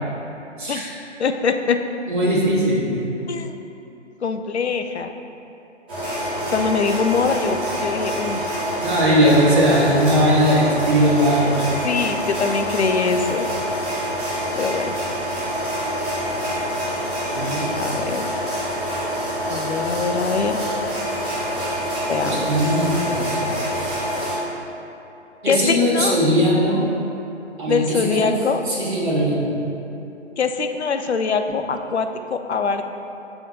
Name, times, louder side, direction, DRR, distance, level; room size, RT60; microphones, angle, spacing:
voice 1, 0.6-0.9 2.1-3.0 8.8-11.7 17.3-17.7 22.2-23.9 25.4-26.8 27.6-28.3 28.7-29.5, equal, 40° right, -6 dB, 1.5 m, -19 dB
voice 2, 1.2-1.8 3.3-3.5 4.2-5.1 6.5-8.5 9.1-9.8 11.8-13.5 14.6-14.9 17.7-18.3 19.5-20.6 22.1-22.5 25.5-26.2 27.7-28.6 30.4-32.8, left 5 dB, 65° left, 7 dB, 0.5 m, -23 dB
sound 1, 5.9-24.4, equal, 10° right, 0.6 m, -26 dB
6.8 x 5.7 x 2.6 m, 2.8 s
figure-of-eight pair, 140°, 36 cm